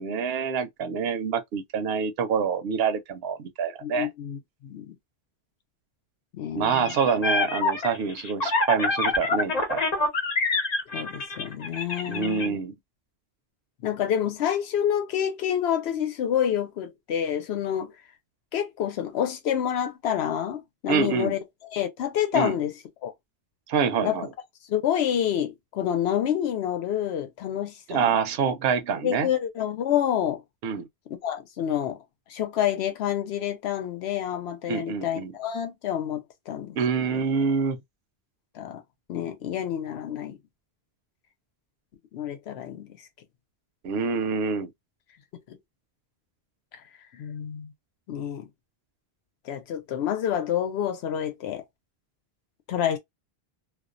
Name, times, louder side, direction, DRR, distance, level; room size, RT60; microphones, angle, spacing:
voice 1, 0.0-4.1 6.5-9.8 12.1-12.7 20.9-21.4 22.3-22.5 23.7-24.3 27.9-29.3 30.6-30.9 34.7-35.3 36.8-37.8 43.8-44.7, right 6 dB, 75° right, 0.8 m, -26 dB
voice 2, 3.8-4.9 6.3-6.9 10.9-12.6 13.8-17.9 18.5-21.4 21.7-22.7 23.0-23.1 24.0-24.2 24.7-28.2 29.0-30.4 31.2-32.0 32.3-36.8 37.1-37.2 38.5-38.8 39.1-40.4 42.1-43.0 45.5-45.6 47.1-47.7 48.1-48.5 49.5-51.6 52.7-53.0, left 10 dB, 85° left, 0.9 m, -28 dB
sound 1, 6.7-12.5, left 2 dB, 45° left, 0.7 m, -26 dB
2.4 x 2.2 x 2.4 m
omnidirectional pair, 1.1 m